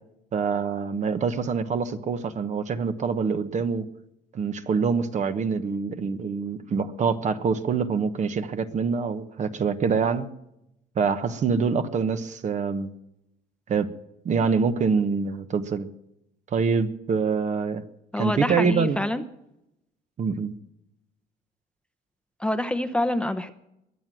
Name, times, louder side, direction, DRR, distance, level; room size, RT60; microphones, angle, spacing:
voice 1, 0.3-3.9 4.3-10.3 11.0-12.9 13.7-13.9 14.2-15.9 16.5-17.8 18.2-19.0 20.2-20.5, right 5 dB, 45° right, 1.2 m, -25 dB
voice 2, 18.1-19.2 22.4-23.5, left 1 dB, 5° left, 0.9 m, -26 dB
22.0 x 7.8 x 7.6 m
cardioid pair, 110°, 17 cm